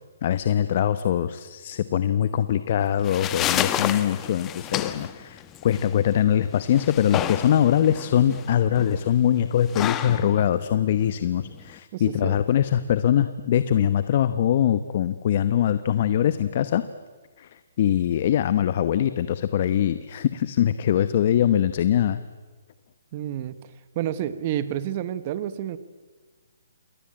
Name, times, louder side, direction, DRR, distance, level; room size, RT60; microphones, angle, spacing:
voice 1, 0.2-16.8 17.4-22.2, left 10 dB, 40° left, 13 dB, 1.0 m, -22 dB
sound 1, 2.8-11.8, left 11 dB, 15° left, 1.1 m, -31 dB
voice 2, 11.9-12.4 23.1-23.7 23.9-25.8, right 11 dB, 30° right, 14 dB, 1.2 m, -29 dB
28.5 x 20.5 x 8.9 m, 1.3 s
hypercardioid pair, 160°, 0 cm